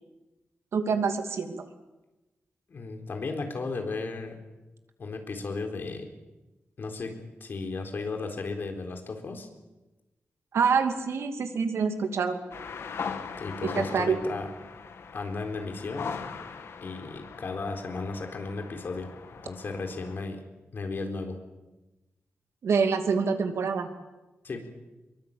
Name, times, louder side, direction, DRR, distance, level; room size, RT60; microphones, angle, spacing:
voice 1, 0.7-1.6 10.5-12.4 13.6-14.2 22.6-23.9, right 5 dB, 80° right, 7 dB, 2.6 m, -26 dB
voice 2, 2.7-4.4 5.0-6.1 6.8-9.5 13.4-14.5 15.1-16.1 16.8-19.1 19.4-20.4 20.7-21.4 24.4-24.6, left 3 dB, 50° left, 4 dB, 4.0 m, -35 dB
sound 1, 12.5-20.2, left 5 dB, 75° left, 2.3 m, -40 dB
25.0 x 22.5 x 8.8 m, 1.1 s
wide cardioid pair, 180°, 4 cm